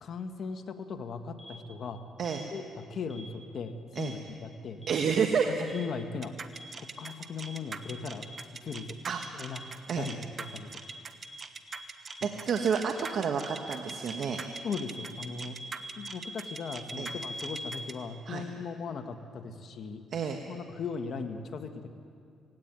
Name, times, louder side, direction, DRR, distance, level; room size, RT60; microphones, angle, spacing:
voice 1, 0.0-2.0 2.5-4.8 5.5-6.3 6.8-8.2 8.6-8.9 9.3-9.6 10.0-10.8 12.2-12.3 14.6-15.6 16.0-21.9, left 5 dB, 55° left, 6 dB, 1.6 m, -38 dB
sound 1, 1.4-1.5 2.2-2.3 3.1-3.2 4.0-4.1 4.8-4.9 5.7-5.8 6.5-6.6 7.0-7.1 7.4-7.5 7.8-7.9 8.2-8.3 8.7-8.8 9.1-9.2 9.5-9.6 10.0-10.1 10.4-10.5 10.8-10.9 11.2-11.3 11.7-11.8 12.1-12.2 12.5-12.6 13.0-13.1 13.4-17.8, equal, 5° left, 7.1 m, -43 dB
voice 2, 4.9-5.5 9.0-9.2 9.9-10.1 12.2-14.5 17.0-17.1 18.3-18.4 20.1-20.4, right 6 dB, 60° right, 4 dB, 1.3 m, -29 dB
sound 2, 6.2-17.9, right 5 dB, 40° right, 1.1 m, -42 dB
18.0 x 17.0 x 9.2 m, 2.3 s
cardioid pair, 90°, 0 cm